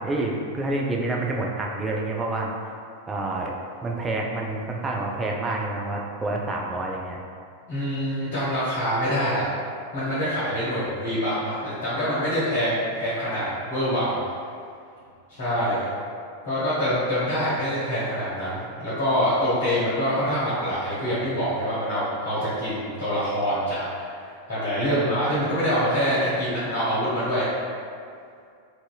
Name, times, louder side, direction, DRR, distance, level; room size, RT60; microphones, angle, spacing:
voice 1, 0.0-2.5 3.1-7.2 8.3-8.4, right 2 dB, 20° right, -1 dB, 0.3 m, -28 dB
voice 2, 7.7-9.4 9.9-14.2 15.4-15.9 16.4-24.1 24.5-27.5, equal, 55° left, -12 dB, 1.1 m, -25 dB
2.6 x 2.6 x 2.3 m, 2.3 s
figure-of-eight pair, 90°, 0 cm